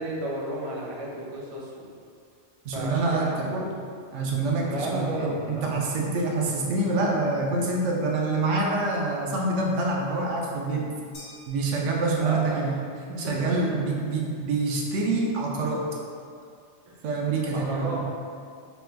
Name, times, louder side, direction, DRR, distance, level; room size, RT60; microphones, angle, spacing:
voice 1, 0.0-1.9 2.7-3.8 4.7-5.7 12.2-12.7 13.1-13.5 17.7-18.0, right 1 dB, 50° right, -4 dB, 0.4 m, -32 dB
voice 2, 2.6-3.6 4.1-10.9 11.5-12.8 13.2-15.9 17.0-18.0, right 3 dB, 85° right, -2 dB, 0.9 m, -26 dB
sound 1, 11.1-12.6, left 1 dB, 70° left, 1.0 m, -49 dB
3.2 x 2.2 x 3.3 m, 2.2 s
omnidirectional pair, 1.2 m